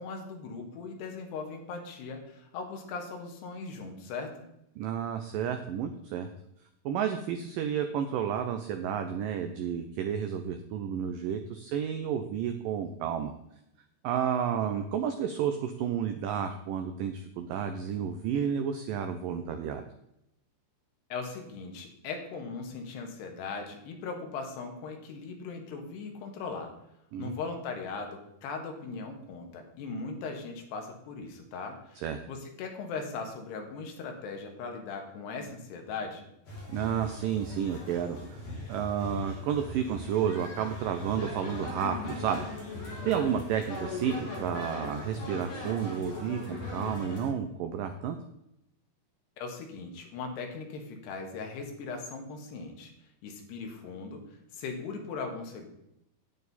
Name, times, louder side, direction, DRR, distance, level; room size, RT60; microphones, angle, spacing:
voice 1, 0.0-4.5 21.1-26.7 27.2-36.3 49.4-52.9 53.2-55.7, left 4 dB, 80° left, 3 dB, 3.6 m, -39 dB
voice 2, 4.8-6.3 6.9-13.3 14.0-19.8 27.1-27.3 32.0-32.2 36.7-42.5 42.7-48.2, right 8 dB, 90° right, 7 dB, 1.9 m, -31 dB
sound 1, 36.5-47.3, left 2 dB, 40° left, 3.4 m, -39 dB
9.4 x 9.1 x 4.1 m, 0.81 s
omnidirectional pair, 4.8 m